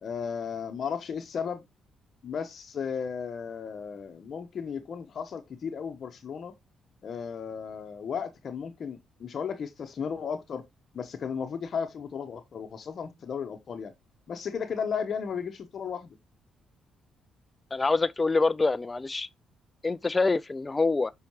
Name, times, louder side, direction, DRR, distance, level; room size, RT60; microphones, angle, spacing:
voice 1, 0.0-1.6 2.2-6.5 7.0-10.6 10.9-13.9 14.3-16.2, left 6 dB, 55° left, 0.9 m, -35 dB
voice 2, 17.7-19.3 19.8-21.1, left 3 dB, 25° left, 0.3 m, -25 dB
6.9 x 5.5 x 3.0 m
cardioid pair, 90°, 0 cm